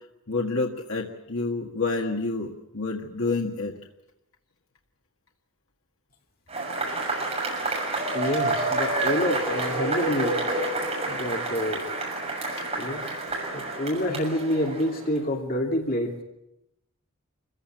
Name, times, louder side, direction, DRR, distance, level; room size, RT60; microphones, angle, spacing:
voice 1, 0.3-3.7, left 3 dB, 75° left, 1 dB, 1.9 m, -28 dB
Cheering / Applause / Crowd, 6.5-15.2, right 2 dB, 30° right, 6.5 m, -28 dB
voice 2, 8.1-10.4 11.1-11.9 12.8-13.0 13.5-16.1, left 1 dB, 45° left, 2 dB, 2.7 m, -28 dB
26.5 x 16.0 x 8.9 m, 0.89 s
head